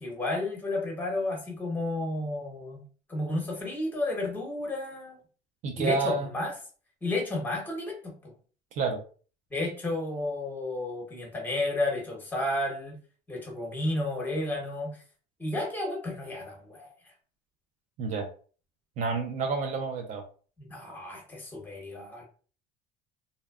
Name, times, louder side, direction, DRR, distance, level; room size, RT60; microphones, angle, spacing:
voice 1, 0.0-2.8 3.1-5.2 5.8-6.5 7.0-8.3 9.5-13.0 13.3-15.0 15.4-16.9 20.7-22.2, left 2 dB, 10° left, 0 dB, 0.9 m, -32 dB
voice 2, 5.6-6.3 8.7-9.0 18.0-18.3 19.0-20.2, right 4 dB, 50° right, 5 dB, 0.4 m, -29 dB
2.5 x 2.1 x 2.3 m, 0.40 s
cardioid pair, 135°, 16 cm